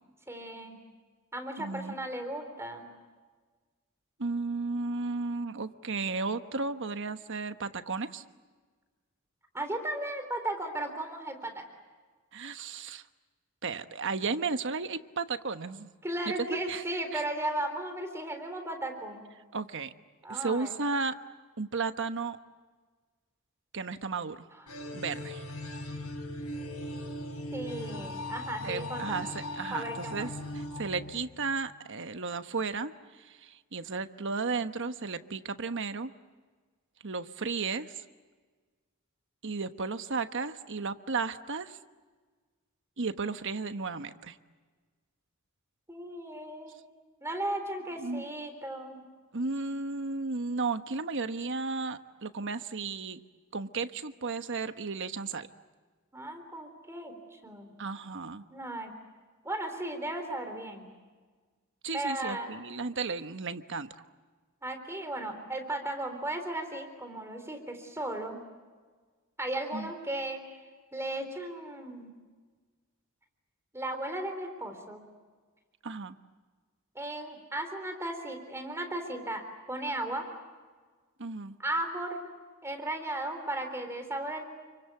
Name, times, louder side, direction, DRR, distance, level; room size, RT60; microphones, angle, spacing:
voice 1, 0.3-0.8 1.3-2.9 9.5-11.6 16.0-19.2 20.2-20.7 24.6-24.7 27.5-29.3 29.7-30.3 45.9-46.8 47.2-49.0 56.1-57.7 58.5-58.9 59.4-60.9 61.9-62.5 64.6-68.4 69.4-70.4 70.9-72.1 73.7-75.0 76.9-79.4 79.7-80.2 81.6-82.3 82.6-84.4, right 1 dB, 15° right, 6 dB, 3.8 m, -36 dB
voice 2, 1.6-1.9 4.2-8.2 12.3-13.0 13.6-15.9 16.5-16.8 17.1-17.2 19.5-19.9 20.3-21.1 21.6-22.4 23.7-24.5 24.9-25.4 28.6-29.3 29.5-30.3 30.5-36.1 37.0-38.0 39.4-41.8 43.0-44.4 48.0-48.3 49.3-53.2 53.5-55.5 57.8-58.4 61.8-63.9 69.7-69.9 75.8-76.2 81.2-81.6, right 4 dB, 60° right, 9 dB, 1.2 m, -34 dB
sound 1, 24.7-31.7, left 1 dB, 85° left, 7.4 m, -39 dB
29.5 x 24.5 x 8.3 m, 1.4 s
head